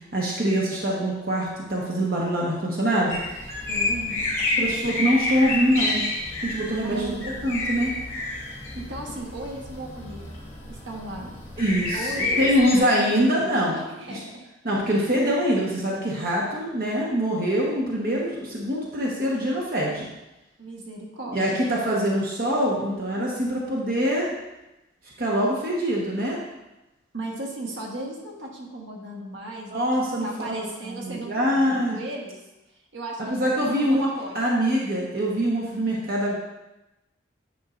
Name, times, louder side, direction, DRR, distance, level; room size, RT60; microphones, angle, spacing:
voice 1, 0.1-3.2 4.6-6.1 6.4-7.9 11.6-13.8 14.1-14.2 14.6-20.1 21.3-24.3 25.2-26.4 29.7-32.0 33.2-34.1 34.3-36.4, equal, 50° right, -4 dB, 1.1 m, -24 dB
sound 1, 3.1-12.8, left 2 dB, 15° left, 2.6 m, -29 dB
voice 2, 3.7-4.4 6.8-7.5 8.5-10.4 10.7-11.3 11.9-12.9 13.7-14.4 14.9-15.1 20.6-21.6 27.1-32.4 32.9-34.5, right 1 dB, 70° right, -1 dB, 1.3 m, -36 dB
9.4 x 5.5 x 2.5 m, 0.97 s
head